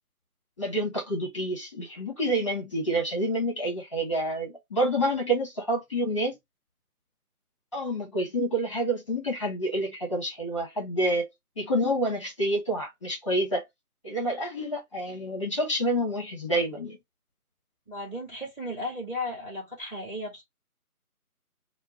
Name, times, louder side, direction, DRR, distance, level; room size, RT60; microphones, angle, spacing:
voice 1, 0.6-6.4 7.7-11.3 11.6-13.6 14.0-17.0, right 1 dB, 20° left, 1.4 m, -28 dB
voice 2, 17.9-20.4, left 1 dB, ahead, 1.7 m, -35 dB
4.3 x 2.3 x 4.4 m
figure-of-eight pair, 160°, 45 cm